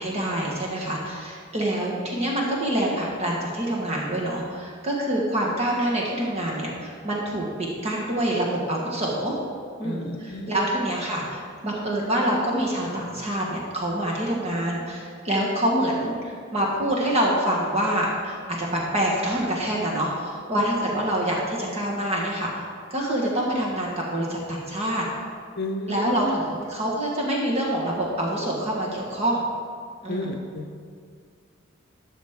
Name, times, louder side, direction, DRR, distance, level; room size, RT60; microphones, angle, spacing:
voice 1, 0.0-9.4 9.8-22.6 22.9-25.0 25.9-29.4 30.0-30.3, right 1 dB, 30° right, -3 dB, 1.3 m, -26 dB
voice 2, 9.8-10.6 25.6-26.3 30.1-30.8, left 1 dB, 55° left, 6 dB, 0.7 m, -32 dB
12.0 x 6.2 x 3.6 m, 2.1 s
head